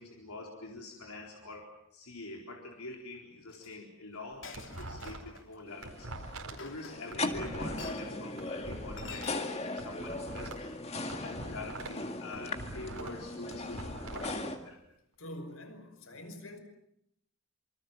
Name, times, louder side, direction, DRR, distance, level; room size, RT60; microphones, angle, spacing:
voice 1, 0.0-6.1 6.5-10.6 11.2-14.8, left 2 dB, 90° left, 1 dB, 4.2 m, -45 dB
Chink clink, 3.5-3.7 4.4-5.4 6.5-7.3 7.8-8.1 9.0-9.4, left 4 dB, 60° left, 3.0 m, -46 dB
sound 1, 4.1-5.4 5.7-9.3 9.7-12.0 12.3-14.3, right 2 dB, 85° right, 4.6 m, -44 dB
sound 2, 5.7-14.6, left 2 dB, 30° left, 2.1 m, -39 dB
voice 2, 15.2-16.6, left 1 dB, 75° left, 9 dB, 5.4 m, -45 dB
27.5 x 25.5 x 7.4 m, 0.76 s
head